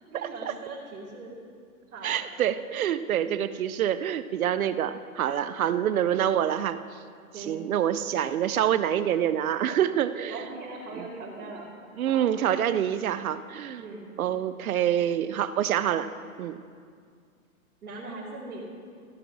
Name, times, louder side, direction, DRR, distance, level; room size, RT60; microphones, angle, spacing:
voice 1, 0.1-1.3 1.9-2.1 3.1-3.4 5.6-5.9 7.3-7.6 10.3-11.7 12.1-12.2 13.8-14.1 17.8-18.6, right 2 dB, 90° right, -8 dB, 3.2 m, -40 dB
voice 2, 2.0-6.8 7.4-10.4 10.9-11.1 12.0-13.8 14.2-16.1 16.4-16.6, right 10 dB, 70° right, 13 dB, 0.6 m, -26 dB
15.5 x 6.1 x 6.1 m, 2.1 s
hypercardioid pair, 175°, 44 cm